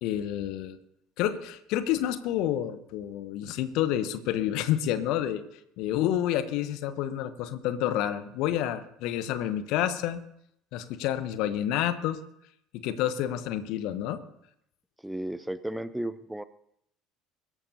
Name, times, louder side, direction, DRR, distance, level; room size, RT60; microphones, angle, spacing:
voice 1, 0.0-0.8 1.2-5.4 5.8-10.2 10.7-12.2 12.8-14.2, left 11 dB, 55° left, 12 dB, 0.9 m, -29 dB
voice 2, 15.0-16.4, right 1 dB, 5° right, 15 dB, 0.6 m, -34 dB
22.5 x 12.0 x 2.8 m, 0.73 s
figure-of-eight pair, 60°, 0 cm